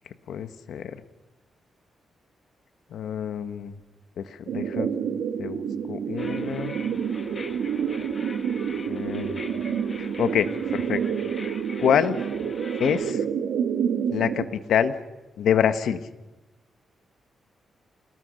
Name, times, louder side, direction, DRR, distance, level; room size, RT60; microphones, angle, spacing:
voice 1, 0.3-1.0 2.9-3.7 4.2-4.9 5.4-6.8 8.8-9.4 10.0-11.0 11.5-12.2 12.8-13.2 14.1-14.9 15.4-16.0, left 8 dB, 80° left, 10 dB, 1.6 m, -26 dB
sound 1, 4.5-14.5, right 7 dB, 90° right, 2.2 m, -28 dB
sound 2, 6.2-13.1, left 3 dB, 35° left, 1.6 m, -43 dB
28.0 x 19.0 x 6.6 m, 1.0 s
cardioid pair, 110°, 0 cm